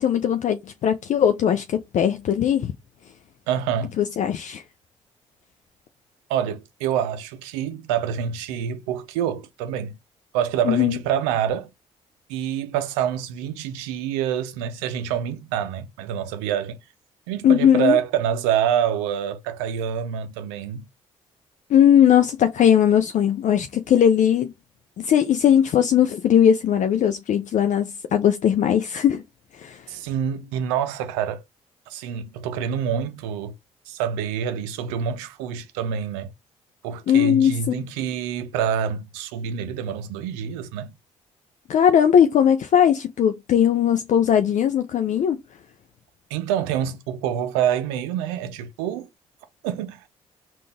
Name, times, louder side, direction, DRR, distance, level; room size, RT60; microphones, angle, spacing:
voice 1, 0.0-2.7 4.0-4.6 10.7-11.0 17.4-18.0 21.7-24.5 25.0-29.2 29.5-29.8 37.1-37.9 41.7-45.4, left 9 dB, 55° left, 0.5 m, -19 dB
voice 2, 3.5-3.9 6.3-10.0 10.3-11.7 12.3-16.8 17.3-20.9 29.9-31.4 31.9-33.5 33.9-36.3 36.8-40.9 46.3-49.1 49.6-50.0, right 9 dB, 85° right, 0.5 m, -26 dB
3.8 x 2.5 x 3.5 m
hypercardioid pair, 50°, 15 cm